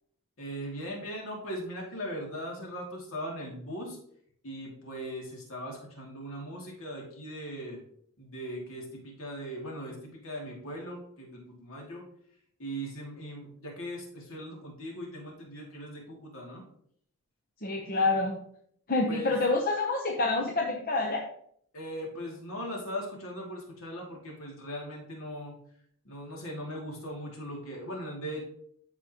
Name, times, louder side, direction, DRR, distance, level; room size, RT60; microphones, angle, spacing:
voice 1, 0.4-4.0 4.4-7.8 8.2-12.0 12.6-16.6 19.1-19.4 21.7-25.6 26.0-28.4, equal, 65° left, -1 dB, 2.5 m, -39 dB
voice 2, 17.6-18.4 18.9-21.3, left 3 dB, 40° left, 1 dB, 0.9 m, -27 dB
13.0 x 5.0 x 3.0 m, 0.65 s
head